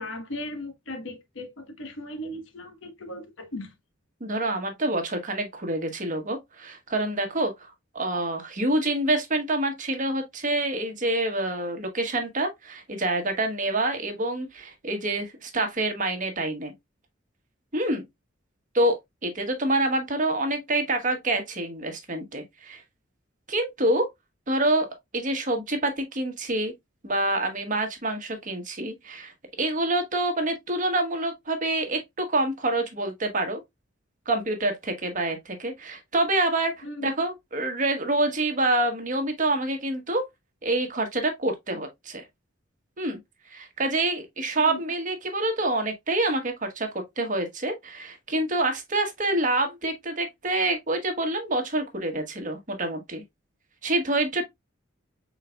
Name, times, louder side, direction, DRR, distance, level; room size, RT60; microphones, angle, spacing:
voice 1, 0.0-3.7 36.8-37.1 44.6-44.8, left 1 dB, 70° left, 1.1 m, -37 dB
voice 2, 4.2-16.7 17.7-18.0 18.7-19.0 19.2-22.8 23.5-24.1 24.5-24.9 25.1-26.7 27.0-29.3 29.6-33.6 34.3-40.2 40.6-42.2 43.0-43.2 43.5-53.2 53.8-54.4, right 2 dB, 40° right, 1.2 m, -27 dB
5.6 x 4.0 x 2.2 m
head